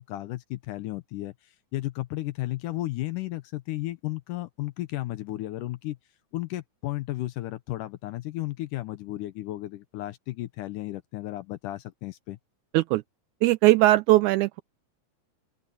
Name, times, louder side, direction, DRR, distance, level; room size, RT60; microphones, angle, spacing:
voice 1, 0.0-1.3 1.7-6.0 6.3-12.4, left 16 dB, 75° left, 2.2 m, -34 dB
voice 2, 13.4-14.6, right 17 dB, 90° right, 1.7 m, -20 dB
open air
omnidirectional pair, 4.0 m